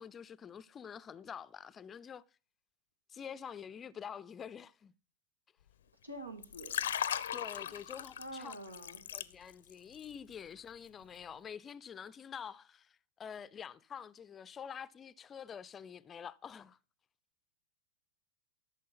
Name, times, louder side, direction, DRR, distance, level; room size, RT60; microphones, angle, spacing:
voice 1, 0.0-2.2 3.1-4.9 7.3-8.5 9.1-16.8, left 7 dB, 20° left, 0.5 m, -47 dB
voice 2, 6.0-6.9 8.2-9.1, right 1 dB, 90° right, 2.2 m, -46 dB
Liquid, 6.4-9.7 10.0-10.3, left 9 dB, 65° left, 0.6 m, -38 dB
13.0 x 6.3 x 5.8 m
figure-of-eight pair, 95°, 0 cm